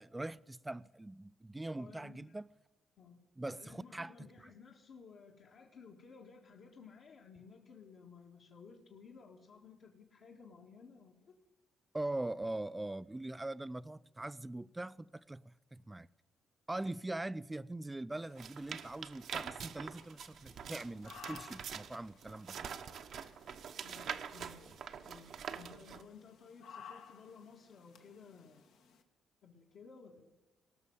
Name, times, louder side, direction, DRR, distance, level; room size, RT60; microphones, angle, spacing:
voice 1, 0.0-2.5 3.4-4.1 11.9-16.1 16.7-22.7, right 2 dB, 15° right, 0.4 m, -42 dB
voice 2, 1.8-2.4 3.0-3.2 3.5-11.1 12.4-12.5 23.8-24.8 25.0-28.6 29.4-30.3, left 5 dB, 70° left, 1.7 m, -56 dB
sound 1, 18.1-29.0, left 7 dB, 85° left, 1.4 m, -58 dB
sound 2, 18.4-26.0, right 7 dB, 65° right, 0.9 m, -45 dB
18.5 x 6.3 x 9.2 m
cardioid pair, 90°, 0 cm